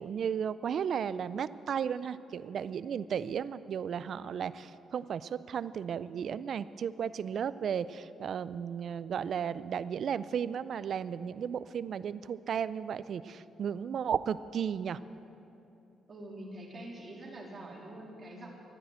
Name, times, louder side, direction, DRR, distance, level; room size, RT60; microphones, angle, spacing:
voice 1, 0.0-15.0, right 8 dB, 60° right, 16 dB, 0.4 m, -34 dB
voice 2, 16.1-18.5, right 1 dB, 35° right, -3 dB, 3.1 m, -45 dB
13.0 x 10.0 x 7.9 m, 2.8 s
cardioid pair, 90°, 0 cm